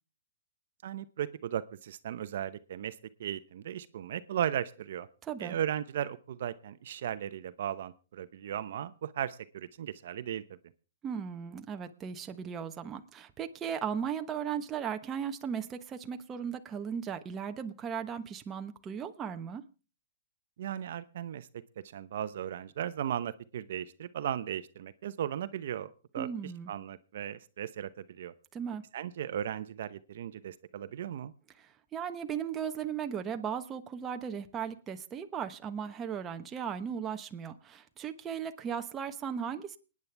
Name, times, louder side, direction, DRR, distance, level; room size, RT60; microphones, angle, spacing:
voice 1, 0.8-5.1 5.4-10.6 20.6-21.5 21.8-28.3 28.9-31.3, right 10 dB, 65° right, 12 dB, 0.8 m, -36 dB
voice 2, 11.0-19.6 26.2-26.7 28.5-28.8 31.6-39.8, right 7 dB, 20° right, 6 dB, 1.1 m, -37 dB
29.0 x 9.7 x 3.4 m, 0.35 s
hypercardioid pair, 155°, 0 cm